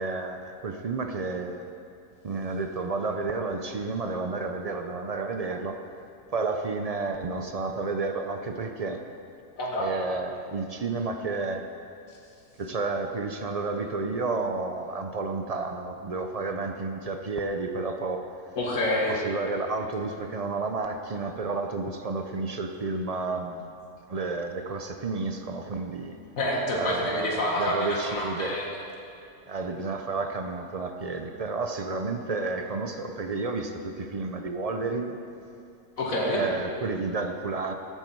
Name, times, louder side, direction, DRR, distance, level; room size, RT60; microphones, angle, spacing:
voice 1, 0.0-1.7 2.2-5.8 6.3-9.0 9.8-11.7 12.6-18.2 19.1-23.7 24.1-26.2 26.7-28.6 29.5-35.2 36.3-37.7, right 3 dB, 50° right, 5 dB, 0.4 m, -31 dB
voice 2, 9.6-9.9 18.6-19.1 26.4-28.8 36.0-36.4, left 1 dB, 70° left, -3 dB, 2.2 m, -27 dB
14.5 x 9.1 x 4.6 m, 2.5 s
omnidirectional pair, 1.5 m